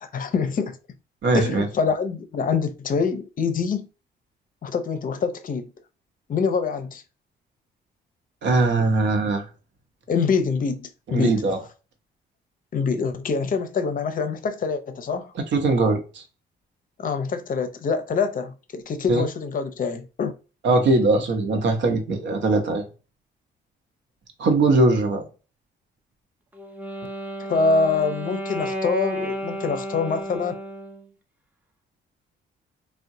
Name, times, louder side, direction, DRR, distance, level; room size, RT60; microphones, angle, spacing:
voice 1, 0.0-0.8 1.3-3.9 4.6-5.7 6.3-7.0 10.1-11.4 12.7-15.3 17.0-20.3 27.5-30.5, left 5 dB, 45° left, 0.6 m, -25 dB
voice 2, 1.2-1.7 8.4-9.4 11.1-11.6 15.5-16.2 19.1-19.3 20.6-22.8 24.4-25.2, right 2 dB, 65° right, 0.9 m, -20 dB
Wind instrument woodwind instrument, 26.5-31.1, equal, 10° right, 0.5 m, -32 dB
3.6 x 2.2 x 2.7 m
cardioid pair, 90°, 20 cm